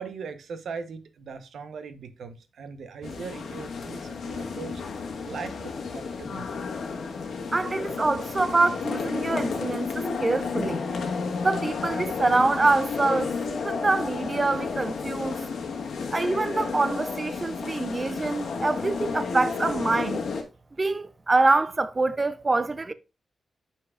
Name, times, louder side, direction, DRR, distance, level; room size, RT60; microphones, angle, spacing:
voice 1, 0.0-4.8 5.2-6.6, right 5 dB, 80° right, 0.9 m, -39 dB
sound 1, 3.0-20.4, left 5 dB, 80° left, 1.4 m, -32 dB
voice 2, 7.5-10.8 11.4-15.4 16.1-20.2 20.8-22.9, right 3 dB, 25° right, 0.5 m, -25 dB
9.6 x 5.7 x 2.4 m
wide cardioid pair, 115°, 0 cm